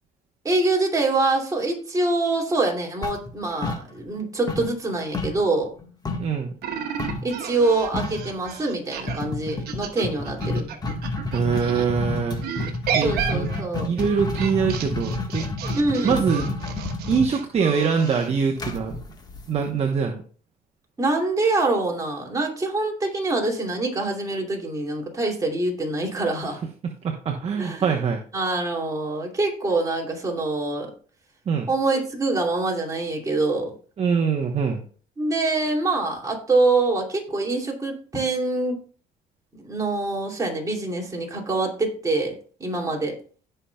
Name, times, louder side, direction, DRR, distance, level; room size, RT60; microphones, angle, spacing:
voice 1, 0.4-5.7 7.2-10.7 13.0-14.0 15.8-16.2 21.0-26.6 27.6-27.9 28.3-30.9 31.7-33.7 35.2-38.8 39.5-42.3 42.6-43.1, right 2 dB, 20° right, -1 dB, 2.6 m, -25 dB
sound 1, 3.0-4.2 4.5-6.4 7.0-7.3 7.6-7.7 7.9-8.3 9.1-19.9, left 3 dB, 25° left, 1.4 m, -30 dB
voice 2, 6.2-6.5 11.3-12.4 12.9-13.5 13.8-15.5 16.0-16.5 17.1-19.0 19.5-20.2 27.0-28.2 31.5-31.7 34.0-34.8, right 6 dB, 40° right, 3 dB, 1.0 m, -23 dB
sound 2, 6.6-11.9 12.4-18.3, right 8 dB, 70° right, 1.1 m, -32 dB
16.5 x 5.6 x 2.3 m, 0.42 s
cardioid pair, 110°, 17 cm